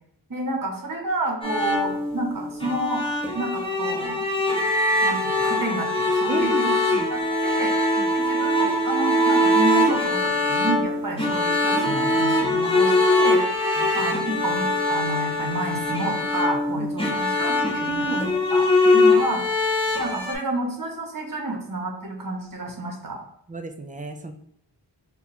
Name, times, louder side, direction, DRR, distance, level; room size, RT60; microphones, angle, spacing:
voice 1, 0.3-3.1 3.3-4.3 5.0-6.7 7.1-7.7 8.1-13.4 13.9-19.4 20.0-23.2, right 1 dB, 50° right, 2 dB, 0.8 m, -30 dB
sound 1, 1.4-20.3, left 1 dB, 10° left, 0.7 m, -22 dB
voice 2, 6.3-7.1 8.0-8.1 13.8-13.9 16.8-16.9 17.9-18.2 23.5-24.3, right 3 dB, 20° right, 7 dB, 0.3 m, -32 dB
2.8 x 2.2 x 4.0 m, 0.67 s
wide cardioid pair, 45°, 44 cm